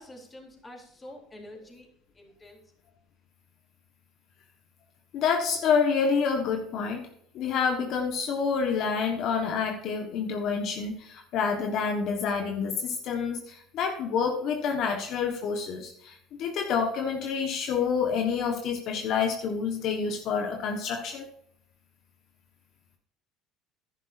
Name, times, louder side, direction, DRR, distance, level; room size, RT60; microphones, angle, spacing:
voice 1, 0.0-1.9 2.1-2.6, left 1 dB, 20° left, 1 dB, 3.5 m, -47 dB
voice 2, 5.1-7.0 7.3-21.3, left 6 dB, 60° left, 4 dB, 1.5 m, -28 dB
11.0 x 11.0 x 2.7 m, 0.71 s
supercardioid pair, 110°, 0 cm